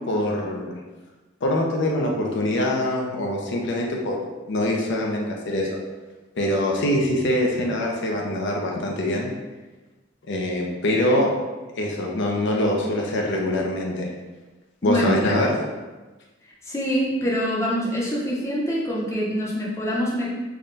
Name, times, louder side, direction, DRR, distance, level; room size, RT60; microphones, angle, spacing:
voice 1, 0.1-0.7 1.4-4.2 4.5-5.7 6.3-9.3 10.3-11.3 11.8-14.1 14.8-15.6, left 1 dB, 65° left, -1 dB, 0.5 m, -24 dB
voice 2, 14.8-15.2 16.6-20.3, equal, 15° left, -5 dB, 0.7 m, -25 dB
3.6 x 2.2 x 3.8 m, 1.2 s
head